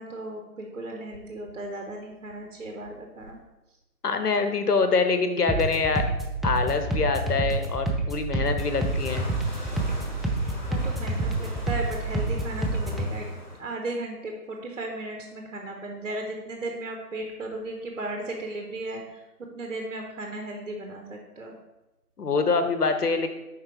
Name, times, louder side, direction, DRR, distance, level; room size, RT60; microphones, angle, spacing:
voice 1, 0.0-3.4 10.7-13.3 13.6-19.2 19.5-21.5, right 2 dB, 55° right, 2 dB, 0.8 m, -35 dB
voice 2, 4.0-6.0 6.4-9.3 22.2-23.3, left 4 dB, 70° left, 8 dB, 0.9 m, -25 dB
sound 1, 5.5-13.1, right 2 dB, ahead, 0.4 m, -28 dB
sound 2, 8.6-13.6, equal, 30° left, 0.8 m, -41 dB
5.3 x 4.0 x 4.4 m, 1.0 s
figure-of-eight pair, 160°, 48 cm